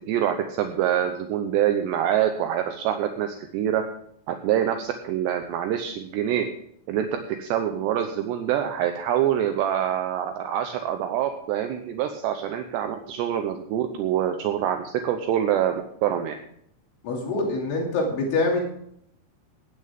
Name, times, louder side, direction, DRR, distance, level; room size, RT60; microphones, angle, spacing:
voice 1, 0.1-3.8 4.3-6.4 6.9-16.4, right 10 dB, 75° right, 6 dB, 2.8 m, -25 dB
voice 2, 17.0-18.6, left 2 dB, 80° left, -1 dB, 5.2 m, -25 dB
16.5 x 10.0 x 3.6 m, 0.68 s
omnidirectional pair, 5.4 m